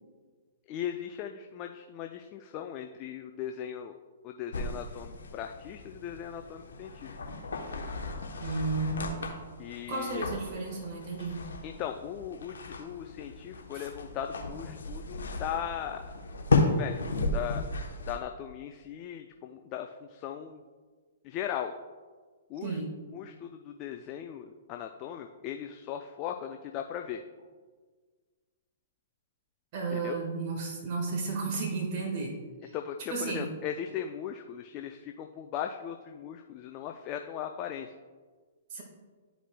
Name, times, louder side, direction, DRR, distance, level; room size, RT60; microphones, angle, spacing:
voice 1, 0.7-4.0 4.2-7.1 9.6-10.2 11.6-16.0 16.6-17.0 17.3-17.6 18.1-20.6 21.2-21.7 22.5-22.8 23.1-27.2 29.9-30.2 32.7-37.9, left 9 dB, 35° left, 5 dB, 0.4 m, -38 dB
sound 1, 4.5-18.2, left 3 dB, 80° left, 0.9 m, -34 dB
voice 2, 8.4-9.3 9.9-11.4 13.7-13.9 22.6-22.9 29.7-32.8 33.1-33.5 38.7-38.8, right 3 dB, 45° right, -2 dB, 1.5 m, -33 dB
11.5 x 5.0 x 2.2 m, 1.5 s
hypercardioid pair, 125°, 0 cm